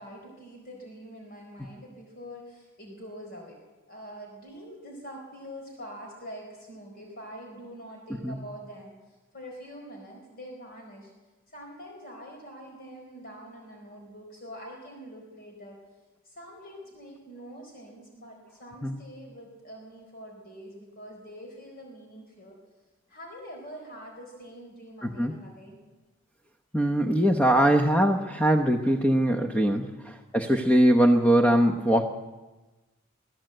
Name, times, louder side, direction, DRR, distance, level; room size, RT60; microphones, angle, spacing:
voice 1, 0.0-3.6 3.9-11.1 11.5-15.8 16.2-22.6 23.1-25.8 29.7-30.0, equal, 45° left, 1 dB, 4.2 m, -45 dB
voice 2, 25.0-25.4 26.7-32.1, right 1 dB, 5° left, 4 dB, 1.0 m, -22 dB
22.5 x 15.0 x 7.8 m, 1.2 s
head